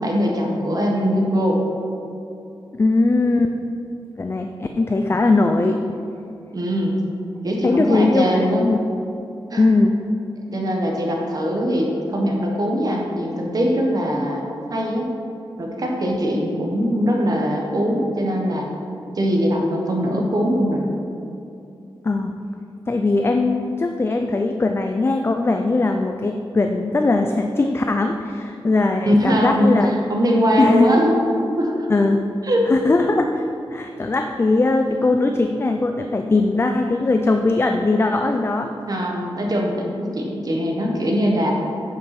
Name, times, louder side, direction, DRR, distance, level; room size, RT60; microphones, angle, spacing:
voice 1, 0.0-1.6 6.5-6.9 7.4-8.7 9.5-9.6 10.5-14.4 14.7-15.1 15.6-18.7 19.1-20.8 29.0-31.2 31.6-31.9 32.4-32.7 38.9-41.6, equal, 45° right, 0 dB, 1.3 m, -21 dB
voice 2, 2.7-3.5 4.2-5.8 7.6-8.8 9.6-9.9 22.0-22.4 22.9-29.9 30.6-30.9 31.9-32.2 32.7-33.4 33.7-38.7, left 2 dB, 30° left, 5 dB, 0.4 m, -20 dB
8.8 x 5.5 x 5.9 m, 2.7 s
wide cardioid pair, 150°, 9 cm